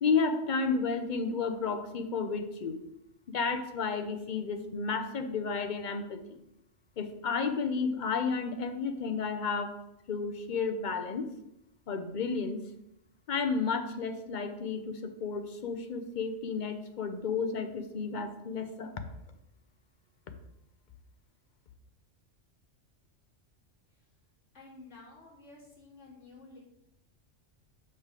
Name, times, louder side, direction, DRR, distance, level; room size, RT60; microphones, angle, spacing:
voice 1, 0.0-2.8 3.3-6.4 7.0-9.8 10.1-11.3 11.9-12.6 13.3-18.9, left 5 dB, 45° left, 8 dB, 0.7 m, -32 dB
voice 2, 24.5-26.6, left 3 dB, 70° left, -6 dB, 2.8 m, -52 dB
6.4 x 5.6 x 4.8 m, 0.84 s
omnidirectional pair, 1.3 m